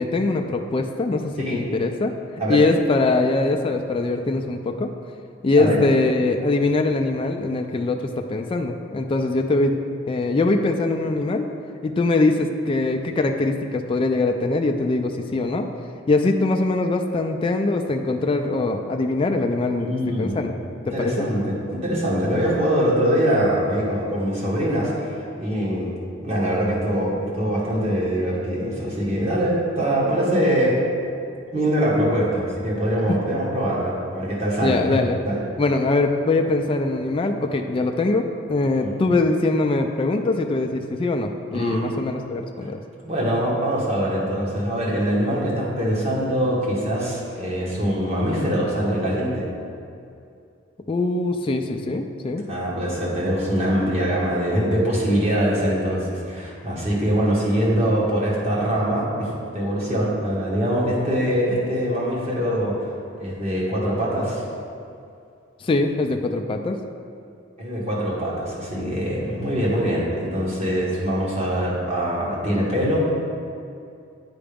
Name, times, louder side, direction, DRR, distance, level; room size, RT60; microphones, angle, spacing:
voice 1, 0.0-2.1 2.5-4.9 5.4-9.8 10.1-11.5 11.8-15.7 16.1-19.9 20.2-20.5 21.0-21.3 33.1-33.2 34.6-35.2 35.6-42.8 50.9-52.5 65.6-66.8, left 2 dB, 25° left, 4 dB, 0.3 m, -22 dB
voice 2, 19.8-20.4 20.9-25.9 26.2-30.8 31.5-35.4 38.8-38.9 41.5-42.0 42.6-42.7 43.0-49.5 52.5-62.8 63.2-64.4 67.6-73.1, equal, 35° right, -5 dB, 1.5 m, -23 dB
8.6 x 4.9 x 3.5 m, 2.5 s
head